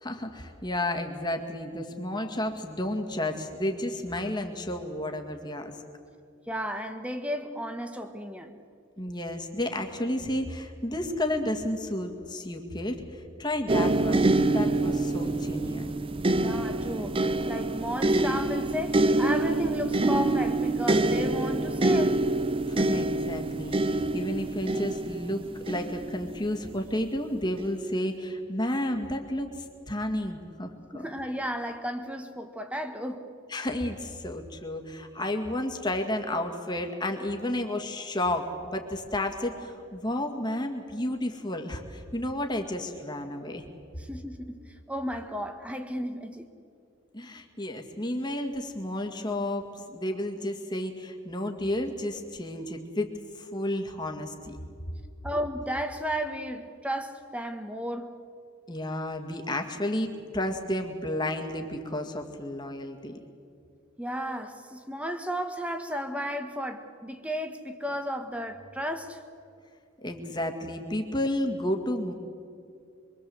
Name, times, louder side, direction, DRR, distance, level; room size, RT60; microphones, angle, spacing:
voice 1, 0.0-5.8 9.0-15.9 22.7-31.0 33.5-43.6 47.1-54.6 58.7-63.2 70.0-72.1, left 1 dB, 20° left, 2.1 m, -32 dB
voice 2, 6.5-8.5 16.4-17.2 17.4-22.2 30.9-33.2 44.0-46.5 55.2-58.1 64.0-69.2, equal, 5° right, 1.5 m, -33 dB
sound 1, 13.7-26.8 27.6-27.7, right 2 dB, 25° right, 0.6 m, -26 dB
24.5 x 24.0 x 8.0 m
head